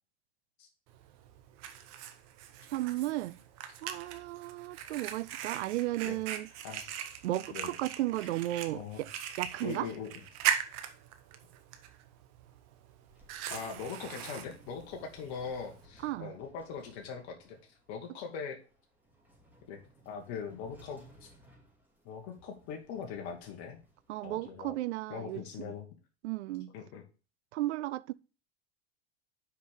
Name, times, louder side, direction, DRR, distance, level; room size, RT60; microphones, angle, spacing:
Fire, 0.9-15.9, right 10 dB, 55° right, 1.2 m, -40 dB
voice 1, 2.7-3.4 3.8-6.5 7.2-9.1 9.4-9.9 16.0-16.4 24.1-25.7 26.2-26.7 27.5-28.1, right 16 dB, 80° right, 0.5 m, -34 dB
voice 2, 9.6-10.2 13.5-17.6 17.9-18.6 19.7-19.8 20.0-21.3 22.0-23.8 24.2-24.8 25.1-25.9 26.7-27.0, left 6 dB, 55° left, 1.8 m, -41 dB
sound 1, 12.9-24.6, equal, 5° right, 2.6 m, -61 dB
5.8 x 5.2 x 6.3 m
hypercardioid pair, 105°, 34 cm